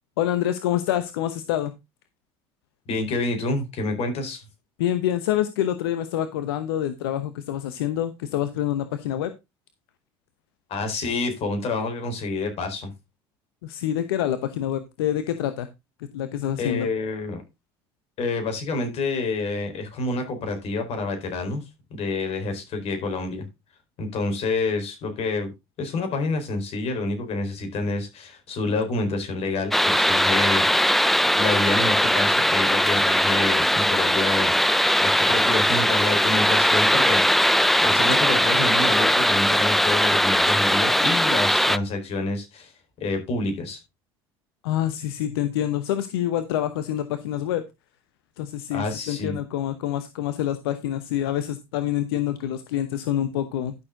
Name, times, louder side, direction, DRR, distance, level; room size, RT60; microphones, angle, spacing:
voice 1, 0.2-1.7 4.8-9.3 13.6-15.7 16.0-16.9 44.6-47.6 48.4-53.7, left 11 dB, 85° left, 0.9 m, -26 dB
voice 2, 2.9-4.4 10.7-12.9 16.6-17.4 18.2-21.6 21.9-23.5 24.0-25.5 25.8-30.6 31.4-34.5 35.0-37.5 37.8-42.7 43.0-43.8 48.7-49.4, left 3 dB, 55° left, 4.4 m, -28 dB
sound 1, 29.7-41.8, equal, ahead, 0.5 m, -20 dB
11.5 x 6.5 x 3.8 m
supercardioid pair, 80°, 12 cm